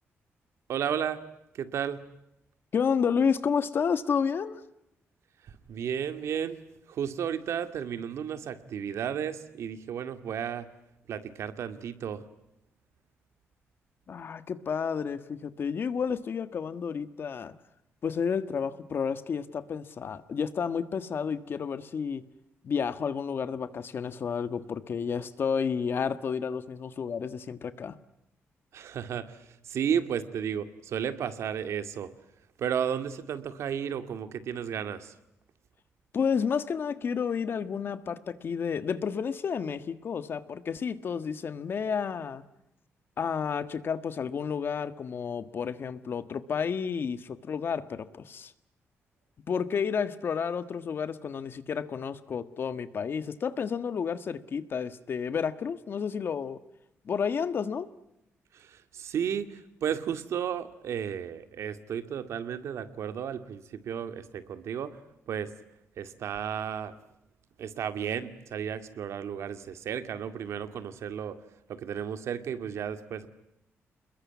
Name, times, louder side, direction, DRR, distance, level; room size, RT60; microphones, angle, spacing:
voice 1, 0.7-1.2 1.5-2.0 5.4-6.6 6.9-10.7 11.1-12.2 28.7-32.1 32.6-35.1 58.5-65.0 65.3-65.5 66.0-66.9 67.6-71.4 71.7-73.3, right 8 dB, 75° right, 10 dB, 2.1 m, -33 dB
voice 2, 2.7-4.6 14.1-17.5 18.0-22.2 22.6-28.0 36.1-42.4 43.2-48.5 49.5-56.6 57.0-57.9, left 6 dB, 50° left, 12 dB, 1.5 m, -31 dB
28.0 x 21.5 x 9.5 m, 0.84 s
cardioid pair, 135°, 5 cm